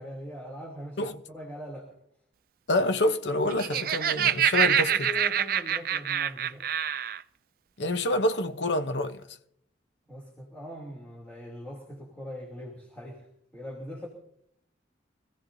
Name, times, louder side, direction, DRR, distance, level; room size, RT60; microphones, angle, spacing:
voice 1, 0.0-1.9 4.1-4.2 4.6-6.7 10.1-13.3 13.5-14.1, left 1 dB, 10° left, 3.1 m, -41 dB
voice 2, 2.7-5.1 7.8-9.4, left 1 dB, 75° left, 0.9 m, -27 dB
Laughter, 3.4-7.2, right 9 dB, 50° right, 0.4 m, -26 dB
25.0 x 15.5 x 2.7 m
head